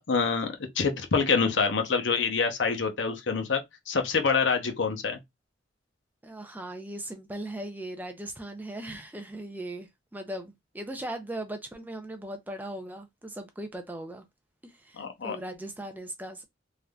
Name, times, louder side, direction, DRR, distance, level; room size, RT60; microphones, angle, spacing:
voice 1, 0.0-3.6 3.9-5.2 15.0-15.4, left 5 dB, 65° left, 0.7 m, -26 dB
voice 2, 6.2-14.2 14.6-16.4, right 1 dB, 10° right, 0.4 m, -38 dB
3.3 x 2.5 x 2.2 m
head